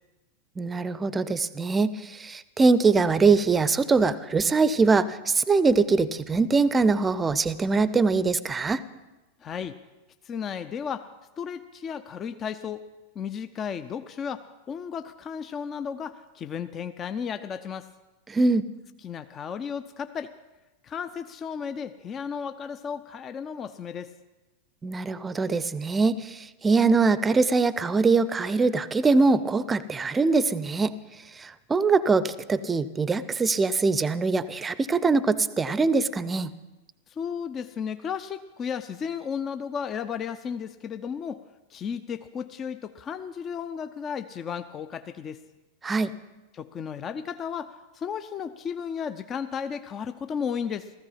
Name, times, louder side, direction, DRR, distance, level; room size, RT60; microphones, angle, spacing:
voice 1, 0.6-8.8 18.3-18.7 24.8-30.9 31.4-36.5 45.8-46.1, right 4 dB, 15° right, 17 dB, 0.7 m, -23 dB
voice 2, 9.4-9.8 10.2-11.1 11.4-12.8 13.1-17.9 19.0-20.3 20.8-24.1 37.1-41.4 41.7-45.4 46.5-50.9, left 7 dB, 25° left, 10 dB, 0.6 m, -34 dB
16.0 x 14.5 x 5.7 m, 1.1 s
figure-of-eight pair, 90°, 0 cm